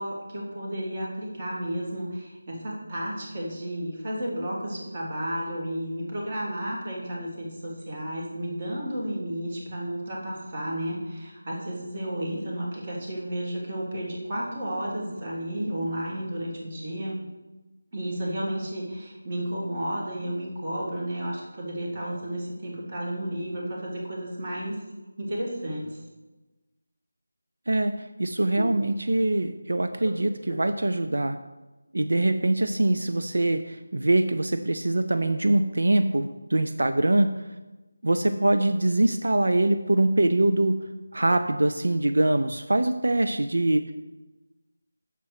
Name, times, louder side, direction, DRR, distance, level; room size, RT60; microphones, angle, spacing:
voice 1, 0.0-17.2 17.9-24.8 25.2-26.0 28.6-28.7 30.0-30.1, right 1 dB, 30° right, -3 dB, 1.7 m, -32 dB
voice 2, 27.7-31.4 31.9-37.3 38.0-40.8 41.1-43.9, right 2 dB, 80° right, 8 dB, 0.4 m, -23 dB
6.7 x 4.2 x 4.9 m, 1.1 s
figure-of-eight pair, 175°, 0 cm